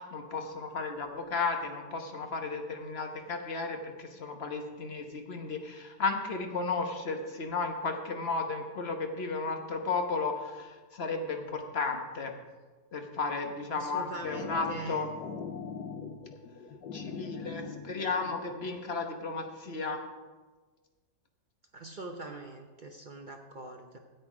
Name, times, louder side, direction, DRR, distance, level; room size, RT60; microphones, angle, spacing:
voice 1, 0.0-12.3 12.9-15.1 16.9-20.0, left 4 dB, 40° left, 4 dB, 1.2 m, -34 dB
voice 2, 13.7-15.1 21.7-24.0, right 2 dB, 50° right, 3 dB, 0.6 m, -42 dB
sound 1, 13.8-18.8, left 5 dB, 75° left, 1.5 m, -42 dB
13.5 x 8.1 x 4.9 m, 1.3 s
omnidirectional pair, 1.9 m